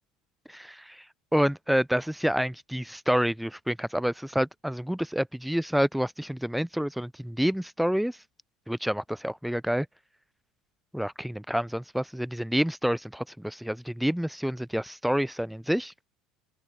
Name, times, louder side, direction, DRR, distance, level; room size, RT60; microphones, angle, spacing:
voice 1, 0.5-1.0 1.3-8.2 8.7-9.9 10.9-15.9, equal, ahead, 0.6 m, -28 dB
open air
hypercardioid pair, 70°, 3 cm